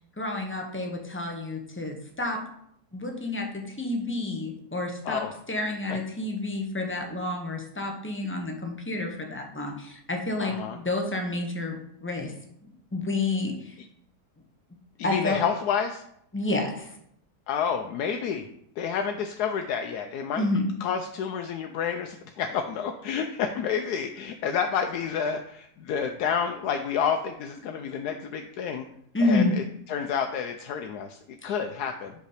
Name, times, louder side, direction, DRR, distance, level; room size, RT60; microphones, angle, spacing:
voice 1, 0.2-2.4 2.9-5.2 5.5-12.3 12.9-13.8 15.0-15.4 16.3-16.9 20.4-20.7 29.1-29.5 31.4-31.5, left 2 dB, 15° left, 3 dB, 0.5 m, -29 dB
voice 2, 10.4-10.8 13.8-13.9 15.0-16.0 17.5-18.5 18.8-20.4 20.8-28.8 29.2-32.1, left 7 dB, 80° left, 5 dB, 1.1 m, -29 dB
5.3 x 5.0 x 4.9 m, 0.72 s
omnidirectional pair, 1.7 m